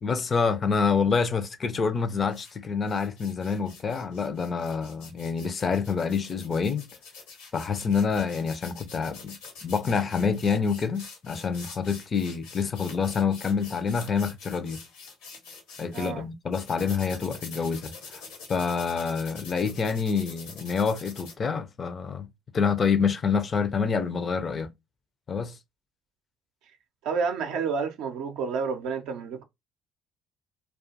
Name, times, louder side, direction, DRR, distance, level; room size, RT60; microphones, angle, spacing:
voice 1, 0.0-6.9 7.5-9.3 9.6-14.8 15.8-18.2 18.5-22.3 22.5-24.7 25.3-25.6, left 5 dB, 40° left, 0.5 m, -27 dB
sound 1, 2.2-2.5 2.9-16.1 16.5-21.3, left 4 dB, 80° left, 1.0 m, -45 dB
voice 2, 15.9-16.3 27.0-29.4, right 5 dB, 70° right, 0.5 m, -30 dB
2.4 x 2.3 x 2.7 m
hypercardioid pair, 55°, 0 cm